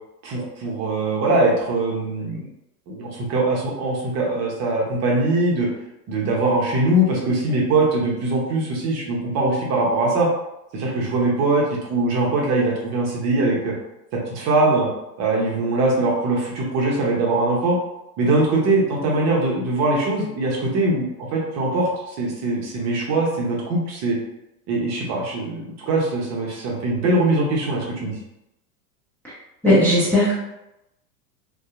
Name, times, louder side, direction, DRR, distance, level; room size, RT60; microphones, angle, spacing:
voice 1, 0.2-2.5 2.9-5.7 6.1-10.3 10.7-13.7 14.1-14.9 15.2-17.8 18.2-24.2 24.7-28.2, right 2 dB, 35° right, -2 dB, 0.7 m, -22 dB
voice 2, 29.6-30.3, left 1 dB, 5° left, -10 dB, 0.5 m, -16 dB
2.6 x 2.2 x 2.4 m, 0.89 s
hypercardioid pair, 100°, 47 cm